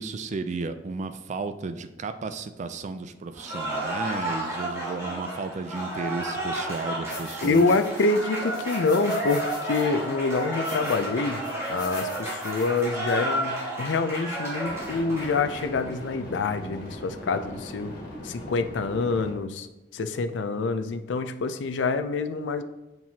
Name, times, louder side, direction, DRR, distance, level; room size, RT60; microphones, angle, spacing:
voice 1, 0.0-7.7, right 3 dB, 40° right, 10 dB, 0.4 m, -33 dB
Cheering / Applause, 3.3-15.9, right 1 dB, 15° right, 1.6 m, -32 dB
sound 1, 7.1-8.2 8.5-9.8 10.3-11.0 11.4-12.8, left 2 dB, 20° left, 1.9 m, -45 dB
voice 2, 7.4-11.4 11.7-17.9 18.2-19.7 19.9-22.6, left 3 dB, 80° left, 9 dB, 0.4 m, -26 dB
sound 2, 14.7-19.3, equal, 55° left, 1.7 m, -40 dB
7.4 x 4.5 x 2.8 m, 0.99 s
head